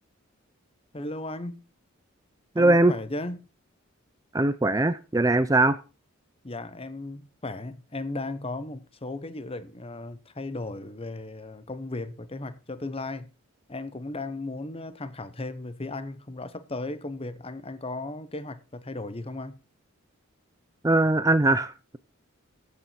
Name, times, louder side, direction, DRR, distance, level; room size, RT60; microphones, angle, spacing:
voice 1, 0.9-1.6 2.6-3.5 6.4-13.3 13.7-19.6, left 2 dB, 30° left, 1.0 m, -36 dB
voice 2, 2.6-2.9 4.3-5.8 20.8-22.0, right 2 dB, 15° right, 0.5 m, -21 dB
15.0 x 8.5 x 4.5 m
head